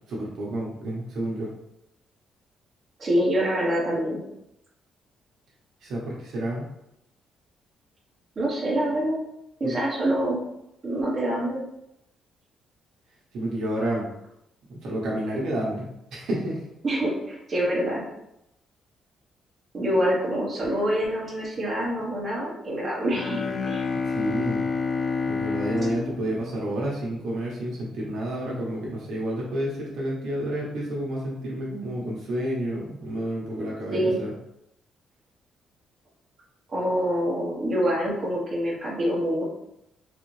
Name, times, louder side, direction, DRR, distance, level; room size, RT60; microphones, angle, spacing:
voice 1, 0.1-1.5 5.8-6.7 9.6-9.8 13.3-14.1 14.7-15.9 16.1-16.6 24.0-24.6 25.2-34.3, right 1 dB, 60° right, -3 dB, 1.0 m, -30 dB
voice 2, 3.0-4.2 8.4-9.2 9.6-10.4 10.8-11.6 16.8-18.0 19.7-23.4 23.7-23.9 33.9-34.2 36.7-39.4, equal, 25° right, -6 dB, 1.1 m, -25 dB
Bowed string instrument, 23.1-27.4, left 4 dB, 25° left, 0.3 m, -29 dB
4.0 x 2.8 x 3.1 m, 0.82 s
cardioid pair, 180°, 0 cm